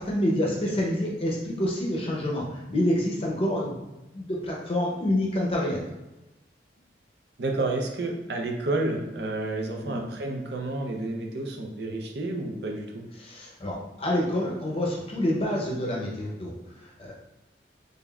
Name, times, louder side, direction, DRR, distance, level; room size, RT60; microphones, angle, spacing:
voice 1, 0.0-3.8 4.1-5.8 9.8-10.0 13.2-17.1, left 1 dB, 30° left, -3 dB, 0.6 m, -27 dB
voice 2, 7.4-13.1, right 2 dB, 65° right, 1 dB, 0.6 m, -30 dB
3.8 x 3.4 x 2.3 m, 1.0 s
head